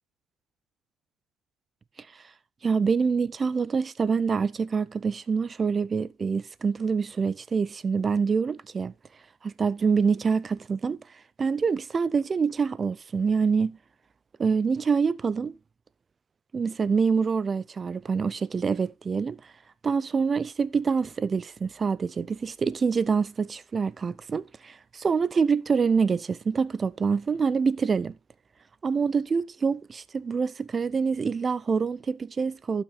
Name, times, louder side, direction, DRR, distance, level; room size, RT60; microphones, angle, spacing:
voice 1, 2.6-8.9 9.4-11.0 11.4-13.8 14.4-15.6 16.5-19.4 19.8-28.2 28.8-32.8, right 5 dB, 30° right, 0.5 m, -26 dB
11.5 x 6.1 x 3.9 m
supercardioid pair, 85°, 0 cm